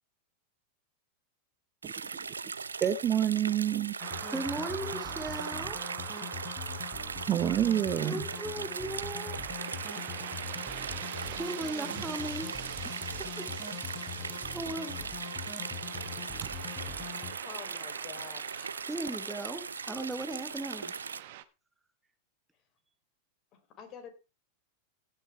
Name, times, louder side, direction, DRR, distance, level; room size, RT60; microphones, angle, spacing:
sound 1, 1.8-21.2, right 5 dB, 85° right, 0.6 m, -39 dB
voice 1, 2.8-3.9 7.3-8.2 16.4-16.5, right 11 dB, 35° right, 14 dB, 0.8 m, -27 dB
sound 2, 4.0-17.3, left 6 dB, 20° left, 4.8 m, -43 dB
sound 3, 4.0-21.4, right 14 dB, 60° right, 1.1 m, -44 dB
voice 2, 4.3-5.8 8.0-9.4 11.3-12.5 12.8-13.5 14.5-15.1 18.9-20.9, right 1 dB, 10° right, 9 dB, 1.3 m, -38 dB
voice 3, 17.4-18.7 19.9-20.0 23.5-24.1, left 7 dB, 40° left, 7 dB, 3.8 m, -47 dB
16.5 x 6.8 x 4.5 m, 0.29 s
figure-of-eight pair, 95°, 0 cm